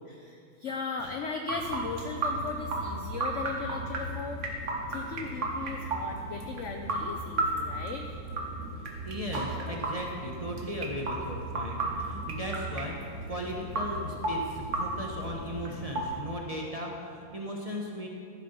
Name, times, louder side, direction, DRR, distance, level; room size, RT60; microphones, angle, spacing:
voice 1, 0.1-4.4 4.9-8.1, left 4 dB, 70° left, 4 dB, 0.7 m, -37 dB
sound 1, 1.5-16.2, right 2 dB, 45° right, 1.4 m, -34 dB
voice 2, 9.0-18.1, equal, 25° right, -2 dB, 0.9 m, -37 dB
13.0 x 7.6 x 5.5 m, 2.5 s
omnidirectional pair, 2.0 m